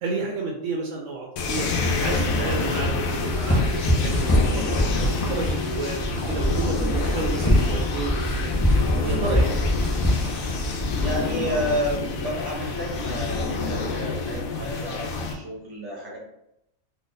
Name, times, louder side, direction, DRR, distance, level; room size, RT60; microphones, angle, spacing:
voice 1, 0.0-1.7 2.0-4.8 5.3-8.5 9.0-9.6, right 4 dB, 70° right, 0 dB, 0.9 m, -31 dB
sound 1, 1.4-15.3, left 3 dB, 85° left, 1.0 m, -27 dB
sound 2, 3.2-12.0, equal, 15° left, 0.5 m, -25 dB
voice 2, 11.0-16.2, equal, 20° right, -4 dB, 1.1 m, -31 dB
2.7 x 2.5 x 3.8 m, 0.80 s
omnidirectional pair, 1.4 m